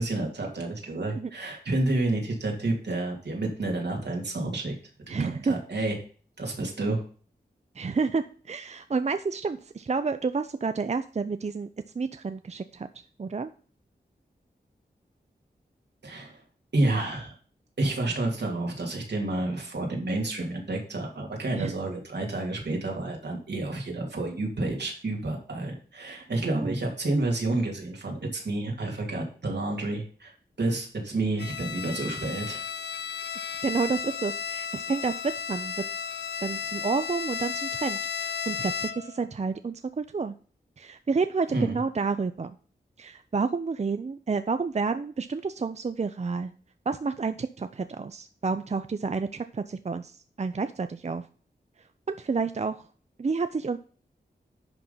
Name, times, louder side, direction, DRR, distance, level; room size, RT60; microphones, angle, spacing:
voice 1, 0.0-4.7 5.1-6.0 6.4-7.0 16.0-16.4 16.7-17.3 17.8-30.3 30.6-32.6 41.5-41.8, right 2 dB, 75° right, 1 dB, 2.7 m, -29 dB
voice 2, 5.1-5.6 7.8-11.7 11.9-13.5 21.6-21.7 26.6-26.7 33.6-35.1 35.5-35.7 36.4-40.3 40.8-42.6 43.0-46.5 46.9-51.2 52.1-52.9 53.2-53.8, right 4 dB, 40° right, 11 dB, 0.5 m, -30 dB
Bowed string instrument, 31.4-39.2, left 7 dB, 75° left, 0.5 m, -34 dB
10.5 x 3.8 x 5.5 m, 0.41 s
wide cardioid pair, 70°, 17 cm